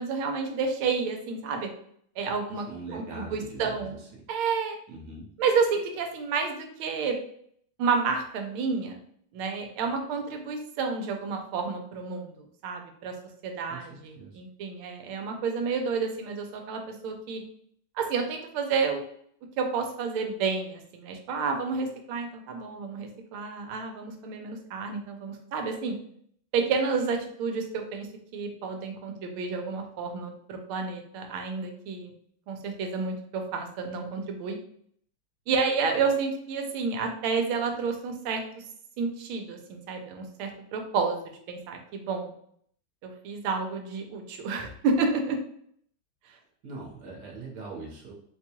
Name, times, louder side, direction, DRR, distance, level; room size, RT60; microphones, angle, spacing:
voice 1, 0.0-1.7 2.2-2.6 2.9-4.0 4.3-4.8 5.4-7.2 7.8-8.9 9.3-13.1 13.4-17.4 18.0-19.0 19.6-26.0 26.5-28.1 28.3-32.1 32.5-34.6 35.5-38.4 39.0-41.2 41.5-42.3 43.0-45.4, right 5 dB, 80° right, 4 dB, 1.5 m, -30 dB
voice 2, 2.5-4.1 4.9-5.3 13.7-14.4 46.6-48.1, right 3 dB, 60° right, -3 dB, 1.4 m, -42 dB
4.3 x 2.3 x 2.9 m, 0.65 s
omnidirectional pair, 2.3 m